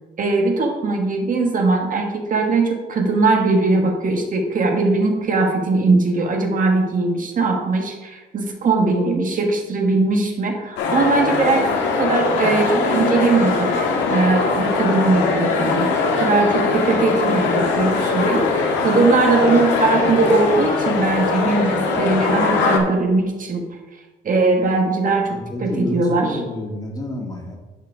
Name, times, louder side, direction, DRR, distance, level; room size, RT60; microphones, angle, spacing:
voice 1, 0.2-15.9 16.2-23.6 24.2-26.4, right 3 dB, 45° right, 2 dB, 1.4 m, -20 dB
sound 1, 10.8-22.8, left 4 dB, 80° left, 1.6 m, -21 dB
voice 2, 25.3-27.6, left 1 dB, 20° left, -1 dB, 2.5 m, -30 dB
10.0 x 4.8 x 4.9 m, 1.2 s
cardioid pair, 85°, 19 cm